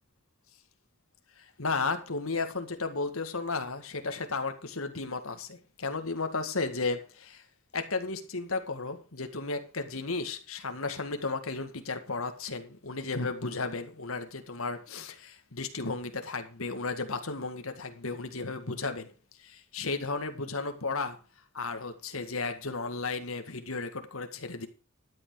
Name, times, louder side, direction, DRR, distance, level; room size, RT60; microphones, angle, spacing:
voice 1, 1.4-7.4 7.7-19.1 19.4-21.2 21.5-24.7, left 3 dB, 75° left, 1.8 m, -34 dB
12.5 x 8.3 x 4.8 m
head